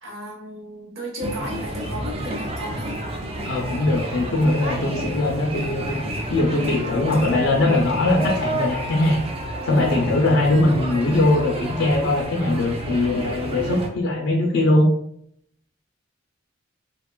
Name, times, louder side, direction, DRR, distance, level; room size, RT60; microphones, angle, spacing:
voice 1, 0.0-2.9, equal, 75° right, -2 dB, 1.0 m, -34 dB
sound 1, 1.2-13.9, right 1 dB, 30° right, 0.4 m, -30 dB
voice 2, 3.4-6.0 6.3-9.2 9.6-14.9, left 2 dB, 65° left, 0 dB, 0.4 m, -21 dB
3.4 x 2.2 x 2.2 m, 0.70 s
head